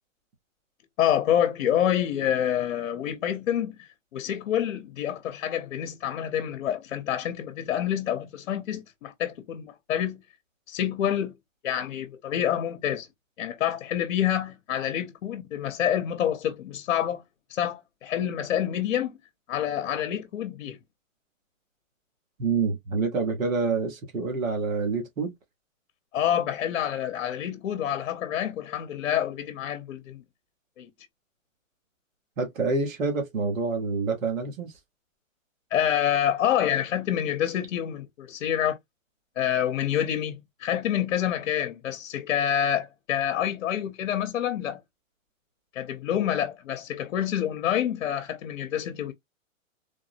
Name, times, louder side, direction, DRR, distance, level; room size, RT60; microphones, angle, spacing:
voice 1, 1.0-10.2 10.7-11.4 11.6-13.1 13.4-17.2 17.5-19.2 19.5-20.8 26.1-30.2 30.8-30.9 35.7-38.8 39.4-44.8 45.7-49.1, left 10 dB, 60° left, 0.7 m, -27 dB
voice 2, 22.4-25.3 32.4-34.7, right 4 dB, 90° right, 1.2 m, -27 dB
3.5 x 2.0 x 2.5 m
hypercardioid pair, 150°, 39 cm